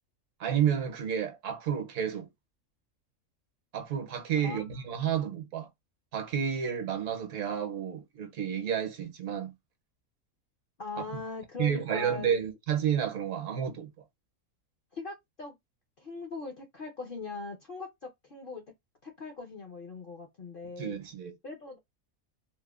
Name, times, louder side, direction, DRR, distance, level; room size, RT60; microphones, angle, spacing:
voice 1, 0.4-2.3 3.7-5.7 6.1-9.5 11.6-13.9 20.8-21.3, right 8 dB, 70° right, 1.0 m, -30 dB
voice 2, 4.4-5.2 10.8-12.4 14.9-15.5 16.0-18.6 19.0-21.0 21.4-21.8, left 3 dB, 55° left, 0.6 m, -41 dB
2.9 x 2.1 x 2.3 m
omnidirectional pair, 1.5 m